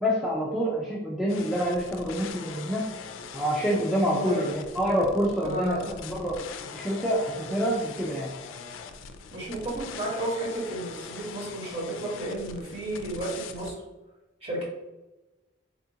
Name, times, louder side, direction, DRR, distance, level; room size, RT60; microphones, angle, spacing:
voice 1, 0.0-2.8 3.3-6.4 6.7-8.3, equal, ahead, -6 dB, 0.4 m, -27 dB
sound 1, 1.3-13.7, left 5 dB, 85° left, 0.3 m, -42 dB
voice 2, 4.0-4.4 5.4-5.8 9.3-13.7 14.4-14.6, right 1 dB, 30° right, -5 dB, 1.1 m, -32 dB
3.4 x 2.4 x 2.7 m, 1.1 s
head